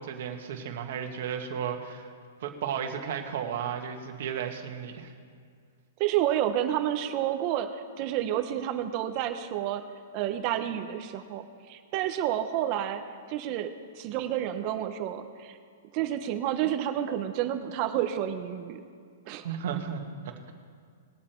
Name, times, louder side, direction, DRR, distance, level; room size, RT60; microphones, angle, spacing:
voice 1, 0.0-2.1 2.4-5.1 19.4-20.5, right 8 dB, 55° right, 4 dB, 1.6 m, -34 dB
voice 2, 6.0-9.8 10.1-13.0 13.3-15.6 15.9-18.8 19.3-19.4, right 11 dB, 30° right, 7 dB, 0.8 m, -30 dB
20.0 x 7.4 x 4.4 m, 2.1 s
hypercardioid pair, 165°, 0 cm